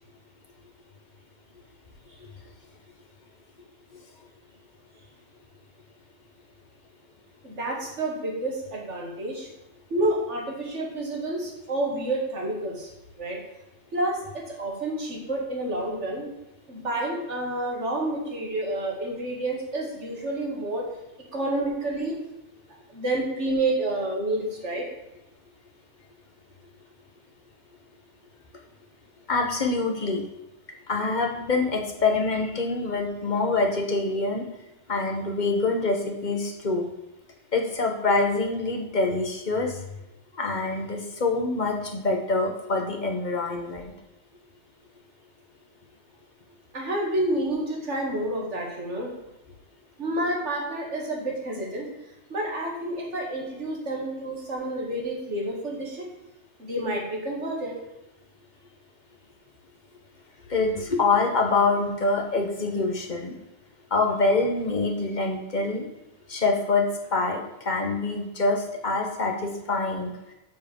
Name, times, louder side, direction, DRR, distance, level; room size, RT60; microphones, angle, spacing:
voice 1, 7.4-9.5 9.9-12.9 13.2-13.4 13.9-16.3 16.7-20.8 21.3-22.2 22.9-24.8 46.7-49.1 50.0-51.9 52.3-56.0 56.6-57.7, right 1 dB, 65° right, -2 dB, 2.5 m, -29 dB
voice 2, 29.3-30.2 30.9-34.5 34.9-36.9 37.5-39.8 40.4-43.9 60.5-63.3 63.9-65.9 66.3-70.1, left 3 dB, 35° left, 2 dB, 1.5 m, -25 dB
8.5 x 4.9 x 7.5 m, 0.92 s
omnidirectional pair, 1.3 m